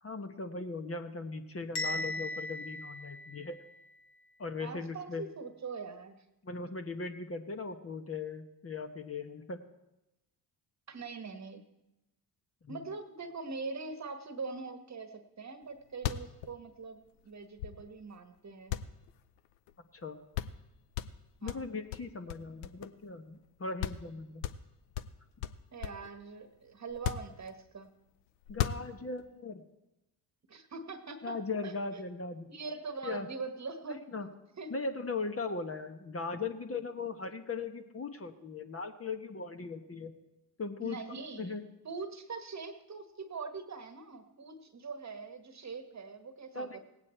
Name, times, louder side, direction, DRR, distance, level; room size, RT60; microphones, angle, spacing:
voice 1, 0.0-3.6 4.4-5.3 6.4-9.6 12.6-12.8 19.9-20.2 21.4-24.5 28.5-29.6 31.2-32.5 33.0-33.3 34.1-34.3 34.7-40.1 40.6-41.0 41.4-41.6 46.5-46.8, left 4 dB, 30° left, 6 dB, 1.2 m, -38 dB
Bell, 1.8-3.8, left 1 dB, 55° left, 1.8 m, -38 dB
voice 2, 4.6-6.2 10.9-11.6 12.7-18.7 21.4-21.6 25.7-27.9 30.5-31.4 31.6-32.0 32.5-34.3 34.6-34.7 40.8-41.6 41.8-46.8, right 4 dB, 35° right, 9 dB, 1.4 m, -42 dB
sound 1, 15.6-15.7 15.9-18.1 18.7-19.7 20.0-20.1 20.3-20.6 20.9-23.1 23.4-23.5 23.8-24.1 24.4-26.1 26.9-27.9 28.4-29.3, left 11 dB, 80° left, 0.7 m, -37 dB
17.5 x 8.7 x 4.4 m, 0.96 s
hypercardioid pair, 50°, 47 cm